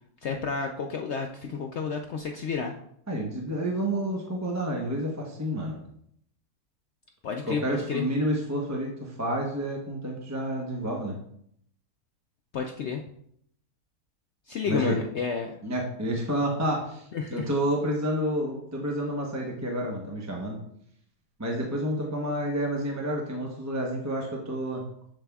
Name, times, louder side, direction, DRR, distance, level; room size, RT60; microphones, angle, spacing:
voice 1, 0.2-2.7 7.2-8.0 12.5-13.0 14.5-15.6 17.1-17.5, left 5 dB, 70° left, 3 dB, 0.6 m, -31 dB
voice 2, 3.1-5.8 7.4-11.2 14.7-15.0 15.6-20.6 21.4-24.8, right 1 dB, 15° right, -1 dB, 0.7 m, -29 dB
7.5 x 7.0 x 2.3 m, 0.69 s
omnidirectional pair, 1.7 m